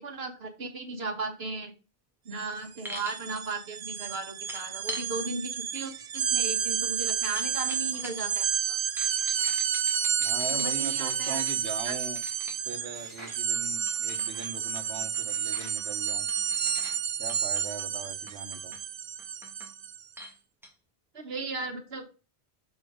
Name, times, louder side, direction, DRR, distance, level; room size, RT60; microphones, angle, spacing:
voice 1, 0.0-1.7 2.2-8.8 10.5-11.4 11.8-11.9 21.1-22.0, right 3 dB, 70° right, 6 dB, 1.5 m, -36 dB
sound 1, 2.3-2.5 2.8-20.0, right 8 dB, 50° right, 0.5 m, -31 dB
sound 2, 2.8-3.2 4.5-5.1 5.7-5.9 6.1-8.4 9.0-12.6 13.5-17.0 17.3-17.9 18.3-18.8 19.2-19.7 20.2-20.3 20.6-20.7, equal, ahead, 1.5 m, -44 dB
sound 3, 8.9-9.6 10.2-11.8 12.9-13.4 14.0-14.5 15.3-15.8 16.5-17.0, equal, 25° left, 1.9 m, -51 dB
voice 2, 10.2-12.2 12.6-16.3 17.2-18.7, right 5 dB, 85° right, 8 dB, 1.3 m, -40 dB
6.4 x 4.5 x 4.9 m, 0.33 s
omnidirectional pair, 1.1 m